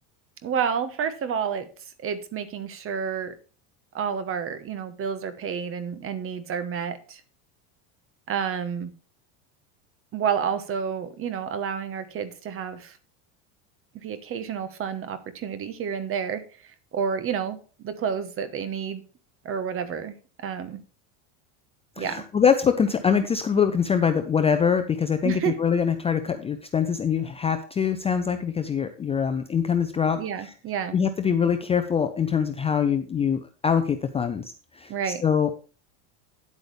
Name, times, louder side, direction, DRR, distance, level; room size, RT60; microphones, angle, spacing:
voice 1, 0.4-1.7 2.0-3.4 3.9-7.2 8.3-8.9 10.1-13.0 14.0-19.0 19.4-20.8 22.0-22.2 25.2-25.6 30.2-31.0 34.9-35.2, right 7 dB, 30° right, 1.2 m, -30 dB
voice 2, 22.0-30.5 30.9-34.9 35.2-35.5, left 7 dB, 15° left, 0.5 m, -24 dB
9.7 x 8.2 x 3.3 m
supercardioid pair, 135°, 41 cm